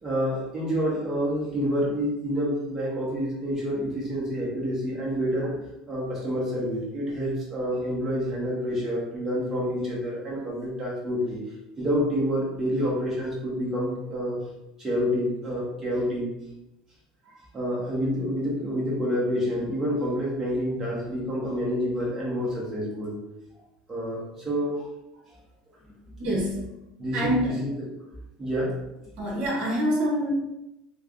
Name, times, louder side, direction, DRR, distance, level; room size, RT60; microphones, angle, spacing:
voice 1, 0.0-5.5 5.9-11.4 11.8-14.4 14.8-16.3 17.5-23.2 23.9-24.7 27.0-27.7 28.4-28.7, equal, 20° right, -5 dB, 1.1 m, -28 dB
voice 2, 26.2-26.7 27.1-27.5 29.2-30.3, equal, 55° right, -2 dB, 1.1 m, -26 dB
3.3 x 2.3 x 2.5 m, 0.93 s
supercardioid pair, 135°, 3 cm